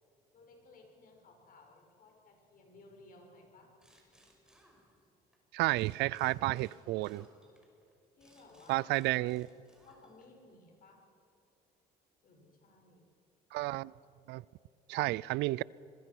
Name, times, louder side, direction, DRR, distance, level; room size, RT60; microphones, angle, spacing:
voice 1, 0.3-3.8 8.2-8.9 9.8-11.0 12.2-13.1, left 3 dB, 55° left, 6.7 m, -58 dB
sound 1, 3.8-5.4 5.7-10.5, equal, 5° right, 5.5 m, -65 dB
voice 2, 5.5-7.3 8.7-9.5 13.5-13.9 14.3-14.4 14.9-15.6, right 19 dB, 85° right, 0.5 m, -31 dB
27.0 x 22.0 x 6.3 m
cardioid pair, 110°, 17 cm